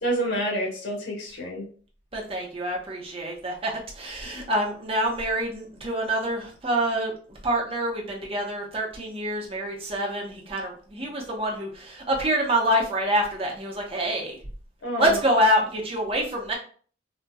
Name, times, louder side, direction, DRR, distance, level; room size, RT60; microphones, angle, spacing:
voice 1, 0.0-1.7 4.3-4.5 14.8-15.2, right 1 dB, 90° left, -2 dB, 1.1 m, -28 dB
voice 2, 2.1-7.1 7.4-14.4 15.0-16.5, equal, 30° right, -1 dB, 0.8 m, -26 dB
4.0 x 2.2 x 2.3 m, 0.43 s
head